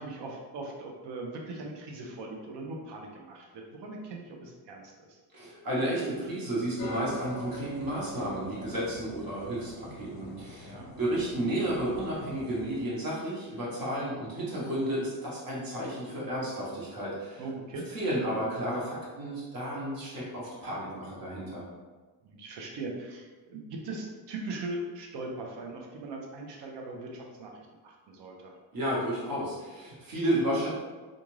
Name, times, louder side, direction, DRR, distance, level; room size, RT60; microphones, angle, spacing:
voice 1, 0.0-5.2 10.7-10.9 17.4-17.8 22.2-28.6, right 2 dB, 65° right, 1 dB, 0.7 m, -40 dB
voice 2, 5.3-17.4 17.9-21.6 28.7-30.7, right 1 dB, 45° right, -6 dB, 1.2 m, -32 dB
sound 1, 6.8-12.8, left 1 dB, 50° left, 0.6 m, -44 dB
2.5 x 2.4 x 3.1 m, 1.3 s
cardioid pair, 110°, 47 cm